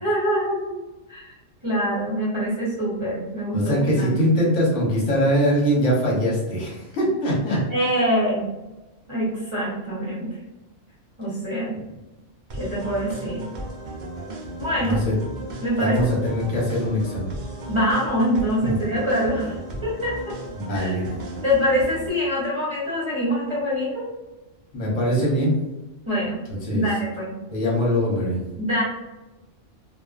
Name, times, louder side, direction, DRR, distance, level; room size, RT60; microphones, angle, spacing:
voice 1, 0.0-0.8 1.1-1.3 1.6-4.1 7.7-8.5 9.1-10.3 11.2-11.7 12.5-13.4 14.6-15.0 15.6-16.1 17.7-19.6 19.8-20.3 20.7-20.9 21.4-24.1 26.1-26.4 26.7-27.3 28.6-28.8, equal, 30° right, -8 dB, 0.7 m, -24 dB
voice 2, 3.5-7.6 14.8-15.2 15.8-17.3 18.6-18.8 20.5-21.1 24.7-25.6 26.5-26.9 27.5-28.4, equal, 65° left, -4 dB, 1.2 m, -22 dB
sound 1, 12.5-22.1, right 1 dB, 90° right, 0.4 m, -35 dB
2.4 x 2.4 x 2.4 m, 1.0 s
omnidirectional pair, 1.3 m